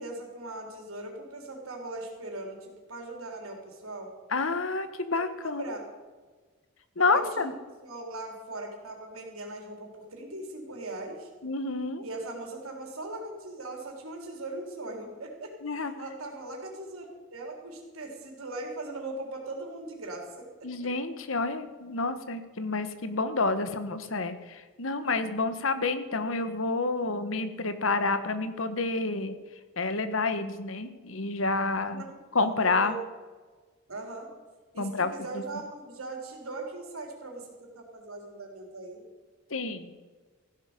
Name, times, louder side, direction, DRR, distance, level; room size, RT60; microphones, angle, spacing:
voice 1, 0.0-4.1 5.4-5.8 7.1-7.5 7.8-11.3 12.0-20.5 26.2-26.5 31.9-33.0 33.9-34.3 34.7-39.0, right 2 dB, 85° right, 1 dB, 3.6 m, -40 dB
voice 2, 4.3-5.6 7.0-7.5 11.4-12.0 15.6-15.9 20.6-29.4 29.8-32.0 32.3-32.9 34.8-35.4 39.5-39.9, left 3 dB, 70° left, 11 dB, 1.2 m, -29 dB
15.5 x 12.0 x 5.2 m, 1.4 s
head